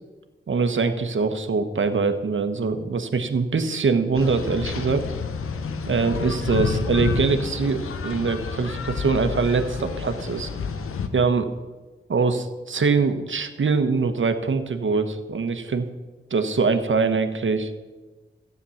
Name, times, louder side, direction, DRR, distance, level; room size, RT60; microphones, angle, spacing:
voice 1, 0.5-5.0 5.9-10.5 11.1-11.5 12.1-15.9 16.3-17.7, right 4 dB, 65° right, 9 dB, 1.4 m, -23 dB
sound 1, 4.1-11.1, left 5 dB, 85° left, 1.0 m, -29 dB
12.5 x 9.5 x 7.2 m, 1.3 s
cardioid pair, 40°, 21 cm